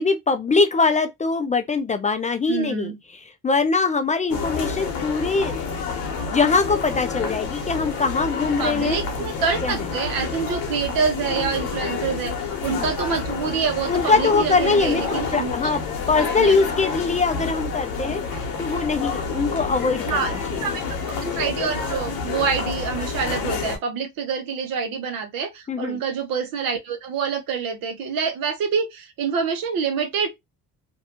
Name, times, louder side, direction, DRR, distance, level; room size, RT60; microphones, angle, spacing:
voice 1, 0.0-2.9 3.4-5.6 6.3-9.0 9.6-9.8 12.6-12.9 13.9-15.8 16.1-18.2 18.6-20.2 20.5-20.6 25.7-26.0, left 4 dB, 20° left, 0.3 m, -22 dB
voice 2, 2.5-3.0 8.6-15.5 16.2-16.6 20.1-20.3 20.6-30.3, right 6 dB, 75° right, 0.8 m, -26 dB
sound 1, 4.3-23.8, left 5 dB, 85° left, 0.9 m, -29 dB
2.6 x 2.2 x 2.8 m
cardioid pair, 95°, 35 cm